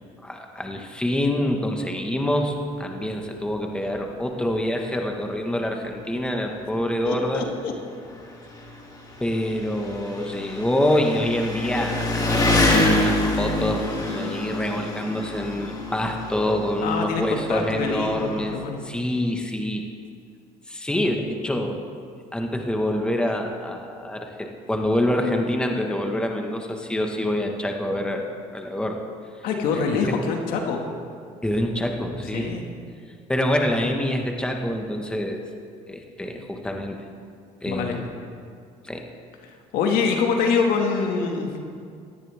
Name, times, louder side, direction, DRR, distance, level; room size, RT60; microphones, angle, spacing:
voice 1, 0.2-7.5 9.2-18.5 18.8-19.8 20.7-21.8 22.3-29.0 31.4-32.5 33.3-35.4 35.9-37.0 37.6-38.0 38.8-39.0, left 1 dB, 5° left, 2 dB, 1.6 m, -26 dB
Engine, 4.0-4.1 4.4-4.5 5.5-5.6 5.8-18.5, left 2 dB, 25° left, 2.6 m, -27 dB
voice 2, 7.0-7.7 16.8-18.8 29.4-30.8 32.3-32.6 37.7-38.0 39.4-41.6, left 5 dB, 75° left, 2 dB, 2.0 m, -25 dB
18.0 x 13.5 x 3.6 m, 2.2 s
supercardioid pair, 95°, 15 cm